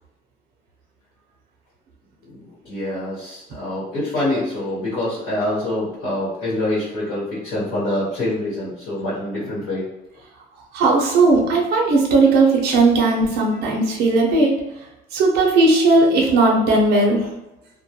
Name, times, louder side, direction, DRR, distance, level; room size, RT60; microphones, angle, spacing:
voice 1, 2.6-9.9 13.5-13.6, left 1 dB, 70° left, -9 dB, 1.0 m, -25 dB
voice 2, 10.7-17.3, right 2 dB, 75° right, 0 dB, 0.6 m, -17 dB
2.2 x 2.1 x 2.8 m, 0.92 s
cardioid pair, 110°, 17 cm